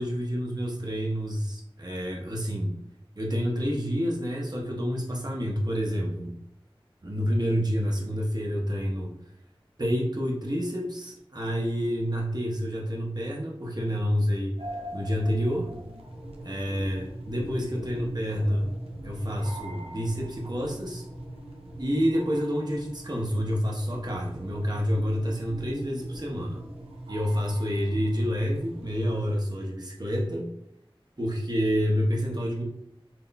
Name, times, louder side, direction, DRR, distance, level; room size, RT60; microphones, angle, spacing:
voice 1, 0.0-2.7 3.2-6.4 7.0-9.1 9.8-14.6 14.9-15.7 16.4-18.7 19.0-21.0 21.8-26.6 27.1-30.5 31.2-32.6, equal, 45° right, -2 dB, 0.9 m, -28 dB
sound 1, 14.6-29.4, right 1 dB, 90° right, 0.6 m, -42 dB
6.0 x 2.5 x 2.2 m, 0.76 s
wide cardioid pair, 40°, 10 cm